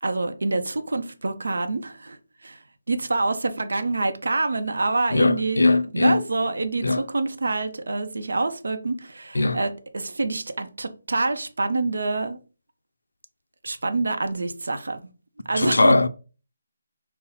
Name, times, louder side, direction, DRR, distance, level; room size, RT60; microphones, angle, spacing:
voice 1, 0.0-2.2 2.4-2.6 2.9-5.6 5.9-12.4 13.6-15.0 15.5-15.9, right 3 dB, 80° right, 0.6 m, -26 dB
voice 2, 5.1-6.2 6.8-7.0 9.3-9.6 15.6-16.1, left 2 dB, 90° left, 0.4 m, -20 dB
4.0 x 2.0 x 4.0 m
figure-of-eight pair, 160°, 0 cm